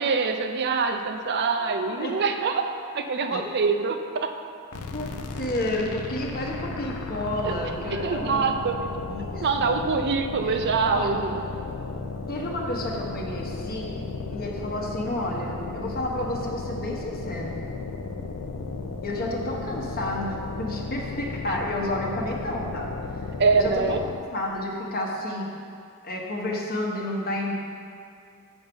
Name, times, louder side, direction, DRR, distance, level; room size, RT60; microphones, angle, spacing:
voice 1, 0.0-2.7 2.9-4.3 7.4-7.5 8.0-8.8 9.4-11.3 23.4-24.0, right 5 dB, 50° right, 6 dB, 0.5 m, -24 dB
voice 2, 1.5-2.2 3.3-3.5 4.9-8.5 8.8-9.8 10.4-11.2 12.3-14.0 14.3-17.6 19.0-22.9 23.2-23.3 23.5-24.0 24.3-25.6 26.0-27.5, left 1 dB, 45° left, -1 dB, 1.0 m, -31 dB
sound 1, 4.7-24.3, left 3 dB, 80° left, 0.5 m, -34 dB
7.2 x 5.8 x 5.2 m, 2.4 s
head